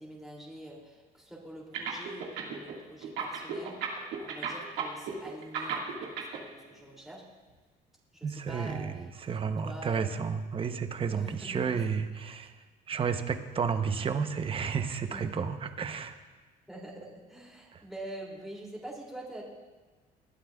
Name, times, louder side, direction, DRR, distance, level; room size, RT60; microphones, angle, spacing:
voice 1, 0.0-7.2 8.1-9.1 9.6-10.1 11.1-11.7 15.1-15.2 16.7-19.4, right 1 dB, ahead, -4 dB, 2.7 m, -45 dB
sound 1, 1.7-2.7 3.0-6.4, right 8 dB, 85° right, 1.9 m, -34 dB
voice 2, 8.2-12.5 12.9-16.2 17.7-17.8, right 6 dB, 30° right, 8 dB, 0.8 m, -32 dB
19.5 x 11.5 x 2.4 m, 1.3 s
cardioid pair, 110°, 17 cm